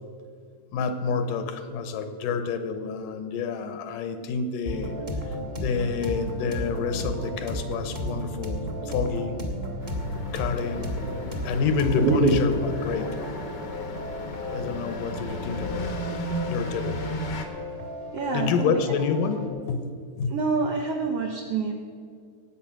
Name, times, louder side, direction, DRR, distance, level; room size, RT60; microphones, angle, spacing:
voice 1, 0.7-4.9 5.6-9.4 10.3-11.0 11.4-13.2 14.5-16.0 16.5-17.0 18.3-19.9 20.2-20.4, left 5 dB, 85° left, 9 dB, 2.6 m, -28 dB
sound 1, 4.6-19.5, equal, 30° right, 0.8 m, -34 dB
sound 2, 9.8-17.4, left 1 dB, 60° left, 1.1 m, -34 dB
voice 2, 12.0-12.4 18.1-18.7 20.3-21.7, right 4 dB, 75° right, 2 dB, 1.4 m, -25 dB
18.5 x 7.8 x 6.1 m, 2.2 s
omnidirectional pair, 3.8 m